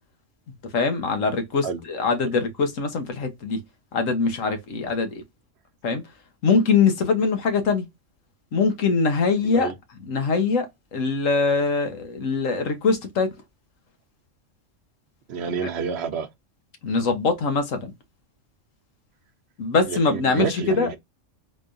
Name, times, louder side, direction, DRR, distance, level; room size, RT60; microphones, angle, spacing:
voice 1, 0.7-3.6 3.9-5.2 5.8-6.0 6.4-7.8 8.5-9.7 10.1-13.3 16.8-17.9 19.6-20.9, left 4 dB, 90° left, 1.4 m, -23 dB
voice 2, 9.4-9.7 15.3-16.3 19.9-21.0, right 6 dB, 60° right, 0.9 m, -29 dB
4.2 x 3.1 x 2.5 m
omnidirectional pair, 1.3 m